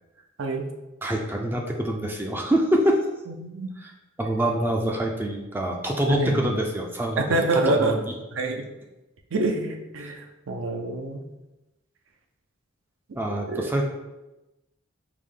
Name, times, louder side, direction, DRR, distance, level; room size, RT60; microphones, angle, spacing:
voice 1, 1.0-3.0 3.8-3.9 4.2-8.1 10.0-10.1 13.1-13.8, right 1 dB, 10° right, 1 dB, 0.3 m, -25 dB
voice 2, 7.2-7.9 8.4-8.6 9.3-11.2 13.5-13.7, right 2 dB, 70° right, 4 dB, 0.5 m, -26 dB
4.8 x 2.1 x 3.6 m, 1.0 s
head